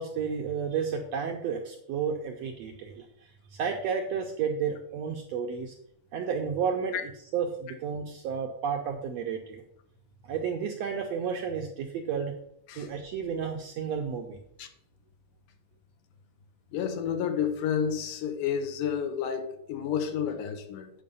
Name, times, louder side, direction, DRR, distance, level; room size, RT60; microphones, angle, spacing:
voice 1, 0.0-5.8 6.1-7.0 7.3-9.6 10.2-12.3 12.7-14.4, right 6 dB, 75° right, 1.6 m, -32 dB
voice 2, 16.7-20.9, left 8 dB, 75° left, 2.5 m, -30 dB
8.6 x 5.8 x 5.4 m
omnidirectional pair, 3.8 m